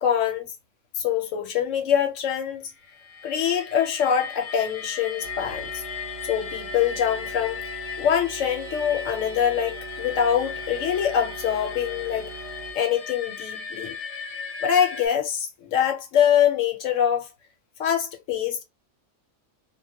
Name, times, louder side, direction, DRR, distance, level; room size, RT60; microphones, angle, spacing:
voice 1, 0.0-0.5 0.9-2.7 3.2-5.8 6.3-12.4 12.7-14.0 14.6-17.3 17.8-18.6, left 9 dB, 85° left, 1.1 m, -24 dB
sound 1, 2.8-15.1, left 5 dB, 55° left, 0.6 m, -37 dB
sound 2, 5.2-12.7, right 4 dB, 65° right, 0.8 m, -41 dB
2.2 x 2.1 x 2.7 m
omnidirectional pair, 1.3 m